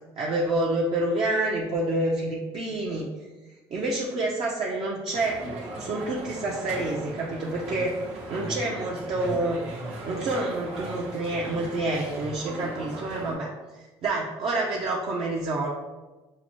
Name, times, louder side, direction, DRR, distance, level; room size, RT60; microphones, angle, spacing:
voice 1, 0.2-3.1 3.7-5.4 5.8-8.0 8.3-9.6 10.1-13.5 14.0-15.7, right 2 dB, 55° right, -3 dB, 0.6 m, -28 dB
sound 1, 5.1-13.3, right 2 dB, 75° right, 1.1 m, -38 dB
5.7 x 2.1 x 3.0 m, 1.2 s
cardioid pair, 95°, 11 cm